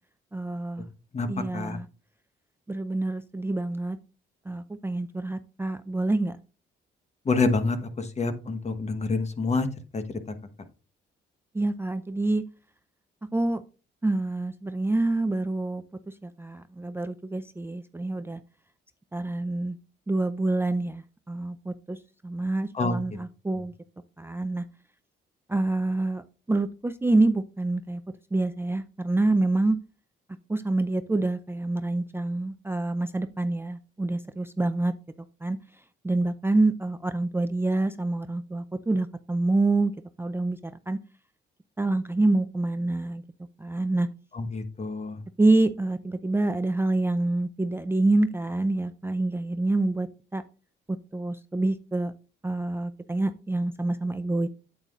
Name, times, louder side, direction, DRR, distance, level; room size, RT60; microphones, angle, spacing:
voice 1, 0.3-0.9 1.3-1.9 2.7-4.0 4.5-6.4 11.5-12.4 13.3-13.6 14.0-15.8 16.2-18.4 19.1-19.8 20.1-22.0 22.2-23.7 24.2-24.6 25.5-28.0 28.3-29.8 30.5-34.9 35.4-35.6 36.0-39.9 40.2-40.6 40.9-41.0 41.8-43.2 43.6-44.1 45.4-50.1 50.3-50.4 51.1-52.1 52.4-54.5, right 2 dB, 10° right, 9 dB, 0.5 m, -26 dB
voice 2, 7.2-9.7 9.9-10.0 22.7-23.0 44.3-45.2, left 3 dB, 35° left, 10 dB, 1.2 m, -27 dB
8.8 x 8.2 x 2.5 m, 0.34 s
cardioid pair, 90°, 20 cm